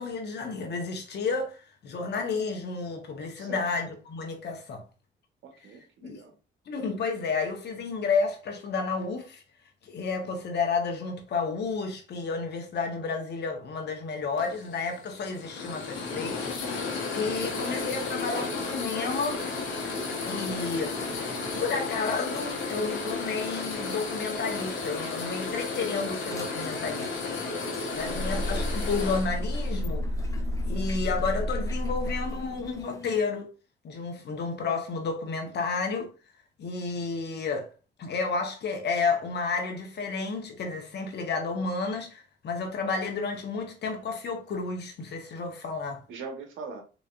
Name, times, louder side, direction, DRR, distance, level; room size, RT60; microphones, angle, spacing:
voice 1, 0.0-4.9 6.0-6.2 6.7-9.4 9.8-16.5 17.1-19.4 20.3-21.2 21.5-27.4 27.9-30.1 30.7-33.5 33.8-36.1 36.6-37.7 38.0-46.0, left 4 dB, 60° left, 1.1 m, -31 dB
voice 2, 3.3-3.7 5.4-6.3 27.9-28.3 46.1-46.8, right 4 dB, 80° right, 1.1 m, -42 dB
sound 1, 14.4-29.9, left 3 dB, 75° left, 1.1 m, -33 dB
sound 2, 15.9-33.2, left 3 dB, 15° left, 0.6 m, -46 dB
sound 3, 27.9-32.8, equal, 55° right, 1.5 m, -31 dB
4.0 x 3.1 x 2.4 m
cardioid pair, 90°, 20 cm